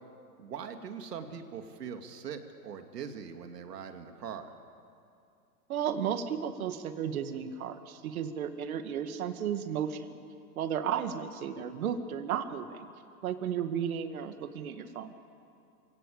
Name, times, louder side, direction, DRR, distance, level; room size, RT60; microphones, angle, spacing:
voice 1, 0.4-4.5, right 7 dB, 75° right, 6 dB, 2.6 m, -41 dB
voice 2, 5.7-10.2 10.6-12.9 13.2-15.1, right 8 dB, 60° right, 9 dB, 2.1 m, -34 dB
27.5 x 17.0 x 8.7 m, 2.5 s
hypercardioid pair, 150°, 48 cm